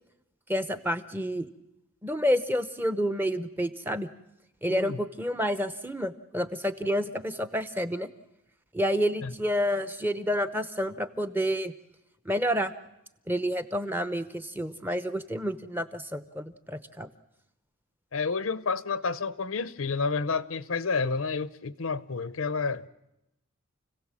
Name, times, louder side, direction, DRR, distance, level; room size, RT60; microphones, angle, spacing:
voice 1, 0.5-1.5 2.0-4.1 4.6-8.1 8.7-11.7 12.2-12.7 13.3-17.1, equal, 10° right, 0.8 m, -29 dB
voice 2, 18.1-22.9, left 4 dB, 80° left, 0.8 m, -30 dB
29.0 x 17.0 x 7.5 m
head